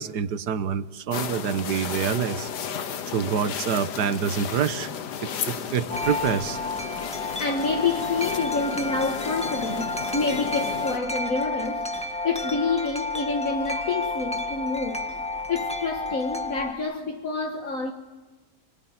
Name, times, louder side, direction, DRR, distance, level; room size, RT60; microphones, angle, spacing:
voice 1, 0.0-2.5 3.1-4.9 5.4-6.6, right 7 dB, 90° right, 1.7 m, -26 dB
sound 1, 1.1-11.0, left 7 dB, 85° left, 1.8 m, -34 dB
Wind chime, 5.9-16.7, left 2 dB, 5° left, 1.6 m, -31 dB
voice 2, 7.1-15.1 15.5-17.9, left 4 dB, 55° left, 2.0 m, -28 dB
26.5 x 22.5 x 9.8 m
omnidirectional pair, 1.7 m